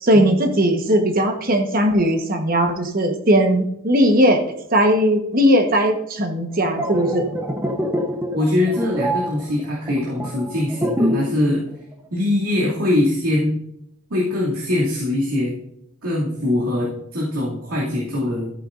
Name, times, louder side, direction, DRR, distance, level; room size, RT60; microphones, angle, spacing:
voice 1, 0.0-4.4 4.7-7.3, equal, 40° right, 6 dB, 1.2 m, -18 dB
sound 1, 6.5-11.4 11.7-11.9, equal, 10° right, 0.8 m, -25 dB
voice 2, 8.3-11.6 12.1-13.6 14.1-15.5 16.0-18.5, left 1 dB, 80° right, -6 dB, 2.5 m, -22 dB
13.5 x 9.4 x 2.6 m, 0.78 s
head